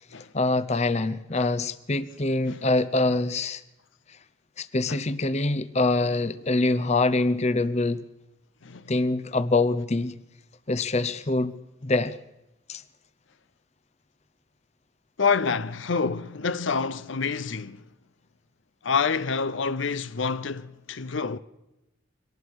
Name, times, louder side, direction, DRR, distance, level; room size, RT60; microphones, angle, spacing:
voice 1, 0.3-3.6 4.6-8.0 8.9-10.1 10.7-11.5 11.8-12.2 12.7-12.8, left 2 dB, 35° left, 0.8 m, -24 dB
voice 2, 15.2-17.8 18.8-21.4, left 5 dB, 70° left, 0.7 m, -27 dB
24.5 x 19.0 x 6.4 m
head